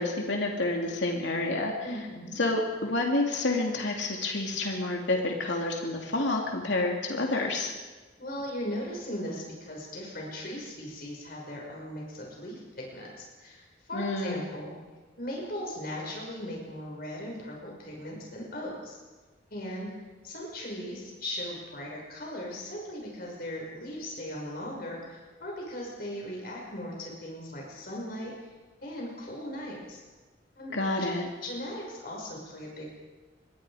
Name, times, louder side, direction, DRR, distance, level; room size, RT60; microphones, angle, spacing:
voice 1, 0.0-1.7 2.4-7.7 13.9-14.4 30.7-31.3, left 2 dB, 70° left, 1 dB, 2.7 m, -29 dB
voice 2, 1.8-2.4 8.2-14.8 15.2-19.0 19.5-19.9 20.2-28.3 28.8-30.0 30.6-30.7 31.4-32.9, left 1 dB, 50° left, -2 dB, 5.9 m, -38 dB
26.0 x 21.5 x 5.0 m, 1.3 s
head